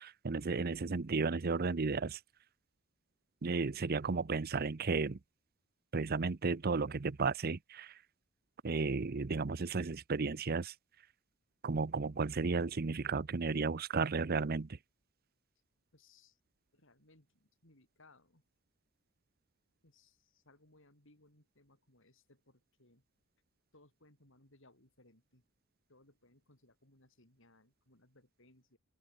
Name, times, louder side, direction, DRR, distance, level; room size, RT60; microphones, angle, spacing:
voice 1, 0.0-2.2 3.4-5.2 5.9-7.9 8.6-10.7 11.6-14.7, right 4 dB, 45° right, 0.6 m, -33 dB
voice 2, 15.9-16.4 16.7-18.4 19.8-23.0 23.7-25.4 25.9-28.8, left 2 dB, 65° left, 7.5 m, -66 dB
open air
head